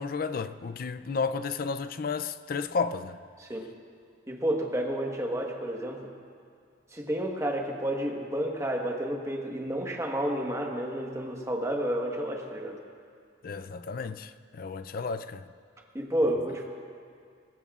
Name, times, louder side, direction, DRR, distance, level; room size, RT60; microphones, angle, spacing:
voice 1, 0.0-3.2 13.4-15.5, left 5 dB, 50° left, 0.4 m, -32 dB
voice 2, 4.3-6.1 6.9-12.8 15.9-16.7, right 1 dB, 15° right, 1.3 m, -30 dB
21.5 x 18.0 x 2.4 m
head